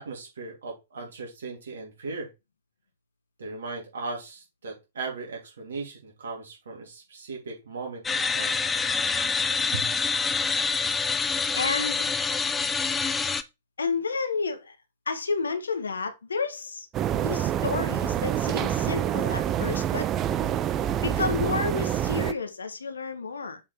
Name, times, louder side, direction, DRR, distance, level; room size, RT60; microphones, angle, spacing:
voice 1, 0.0-2.3 3.4-8.6 9.7-9.9, right 3 dB, 70° right, 3.1 m, -37 dB
sound 1, 8.0-13.4, left 5 dB, 15° left, 0.6 m, -26 dB
voice 2, 11.6-12.1 13.8-14.7 15.1-16.9 17.2-20.1 21.0-23.6, left 4 dB, 75° left, 1.2 m, -30 dB
sound 2, 16.9-22.3, right 10 dB, 30° right, 0.5 m, -27 dB
7.0 x 4.8 x 3.4 m
figure-of-eight pair, 100°, 0 cm